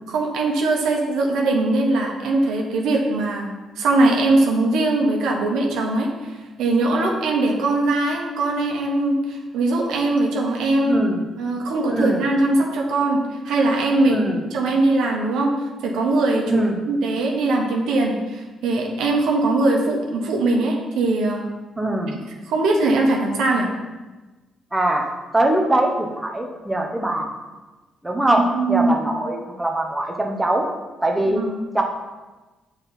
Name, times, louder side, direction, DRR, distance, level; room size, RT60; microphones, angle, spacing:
voice 1, 0.1-3.5 3.8-6.3 6.6-11.0 11.4-13.2 13.4-14.2 14.5-15.5 15.8-21.4 22.5-23.7 28.3-28.9 31.3-31.5, right 2 dB, 85° right, 0 dB, 1.2 m, -21 dB
voice 2, 10.9-11.2 11.9-12.2 14.1-14.4 16.5-16.8 21.8-22.2 24.7-25.1 25.3-27.3 28.0-30.6 31.0-31.4 31.7-31.8, right 1 dB, 10° right, 1 dB, 0.9 m, -22 dB
7.4 x 4.1 x 4.1 m, 1.2 s
cardioid pair, 90°, 0 cm